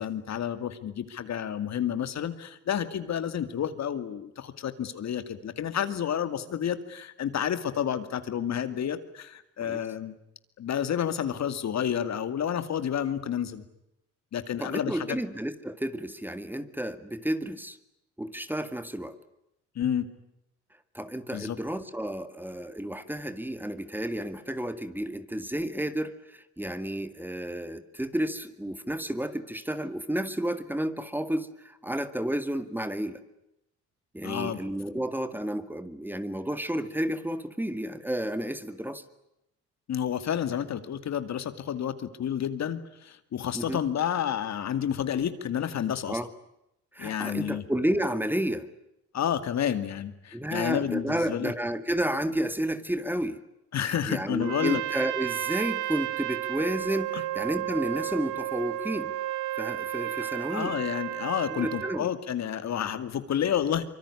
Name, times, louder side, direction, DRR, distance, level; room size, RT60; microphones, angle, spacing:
voice 1, 0.0-10.1 10.6-13.6 14.3-15.1 19.8-20.1 21.3-21.6 34.2-34.6 39.9-46.2 47.0-47.6 49.1-51.5 53.7-54.8 57.1-57.2 60.2-63.9, left 9 dB, 60° left, 11 dB, 2.4 m, -30 dB
voice 2, 14.6-17.8 18.2-19.2 20.9-33.2 34.1-39.0 43.5-43.8 46.1-46.3 46.9-48.7 50.3-53.4 53.8-59.1 59.6-60.8 61.5-62.1, right 1 dB, 5° right, 11 dB, 2.1 m, -31 dB
Trumpet, 54.4-62.1, right 14 dB, 85° right, 1.6 m, -33 dB
25.0 x 24.0 x 9.8 m, 0.83 s
cardioid pair, 90°, 30 cm